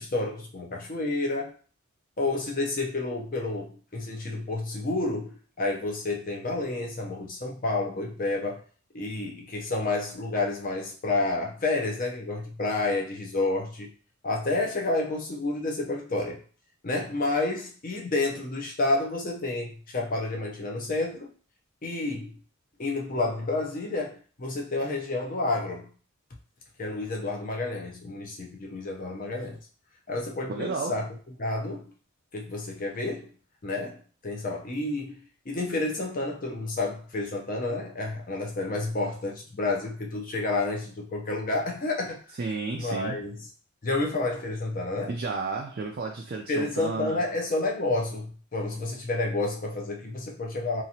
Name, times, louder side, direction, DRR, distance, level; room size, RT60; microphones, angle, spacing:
voice 1, 0.0-1.5 2.2-8.6 8.9-13.9 14.2-16.4 16.8-21.3 21.8-22.4 22.8-25.9 26.8-29.6 30.1-31.1 31.4-31.9 32.3-33.3 33.6-42.4 42.8-43.4 43.8-45.1 46.5-50.8, left 2 dB, 40° left, 1 dB, 0.6 m, -30 dB
voice 2, 30.5-31.1 42.4-43.2 45.1-47.2, right 4 dB, 45° right, 1 dB, 0.3 m, -32 dB
2.9 x 2.5 x 2.7 m, 0.41 s
head